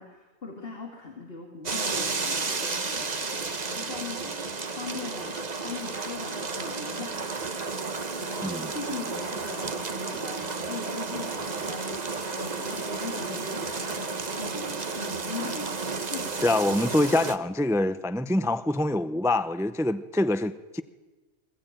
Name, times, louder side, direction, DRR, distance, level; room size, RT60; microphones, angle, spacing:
voice 1, 0.0-12.0 12.3-15.8 16.0-16.5, left 4 dB, 45° left, 2.5 m, -40 dB
sound 1, 1.7-17.4, right 4 dB, 35° right, 1.2 m, -32 dB
voice 2, 8.4-8.7 16.4-20.8, left 1 dB, 5° right, 0.3 m, -25 dB
21.5 x 20.0 x 8.9 m
omnidirectional pair, 1.4 m